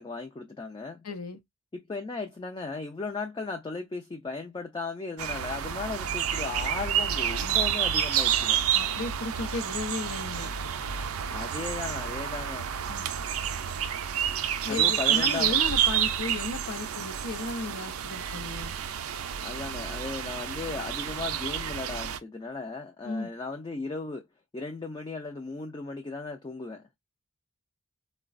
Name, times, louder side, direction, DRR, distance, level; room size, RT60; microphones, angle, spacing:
voice 1, 0.0-1.0 1.7-8.6 11.3-12.7 14.7-15.6 19.4-24.3 24.5-26.9, left 3 dB, 20° left, 0.3 m, -36 dB
voice 2, 1.0-1.4 8.8-10.5 12.9-13.1 14.6-18.7 23.0-23.3, left 3 dB, 75° left, 0.6 m, -34 dB
sound 1, 5.2-22.2, right 9 dB, 65° right, 0.4 m, -29 dB
3.8 x 2.2 x 2.4 m
head